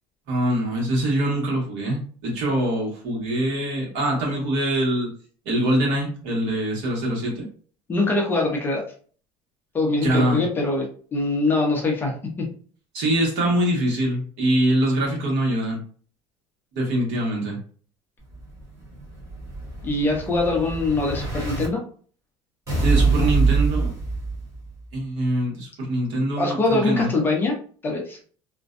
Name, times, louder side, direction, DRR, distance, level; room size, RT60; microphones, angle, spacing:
voice 1, 0.3-5.1 5.4-7.4 10.0-10.4 12.9-15.8 16.7-17.6 22.8-23.9 24.9-27.1, right 1 dB, 70° right, -1 dB, 1.1 m, -23 dB
voice 2, 7.9-8.8 9.7-10.9 11.1-12.1 19.8-21.8 23.0-23.2 26.4-27.6 27.8-28.2, left 2 dB, 20° left, 0 dB, 0.5 m, -23 dB
Explosion, 18.3-21.7 22.7-24.7, right 4 dB, 25° right, 0.9 m, -24 dB
2.5 x 2.1 x 2.4 m, 0.43 s
cardioid pair, 175°, 11 cm